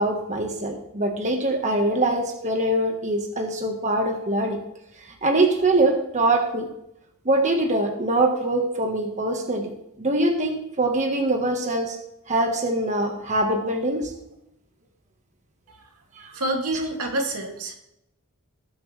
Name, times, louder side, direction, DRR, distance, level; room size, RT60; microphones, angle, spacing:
voice 1, 0.0-4.6 5.2-6.7 7.2-9.7 10.0-12.0 12.3-14.1 16.2-16.3, right 2 dB, 35° right, 2 dB, 1.5 m, -23 dB
voice 2, 16.3-17.7, right 1 dB, 90° right, 1 dB, 2.6 m, -27 dB
20.0 x 8.0 x 3.4 m, 0.81 s
head